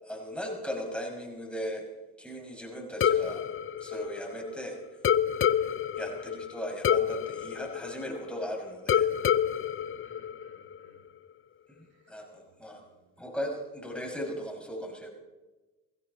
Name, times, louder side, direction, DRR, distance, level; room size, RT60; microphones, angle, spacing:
voice 1, 0.0-3.4 3.8-4.8 5.6-9.1 11.7-12.8 13.2-15.1, equal, 5° left, 0 dB, 6.0 m, -37 dB
sound 1, 3.0-4.6 5.0-8.4 8.9-10.8, left 9 dB, 35° left, 0.6 m, -28 dB
voice 2, 10.0-11.1 11.9-12.2 12.5-12.6 12.9-13.2, right 7 dB, 70° right, 3 dB, 2.9 m, -61 dB
22.0 x 15.5 x 4.2 m, 1.2 s
supercardioid pair, 60°, 37 cm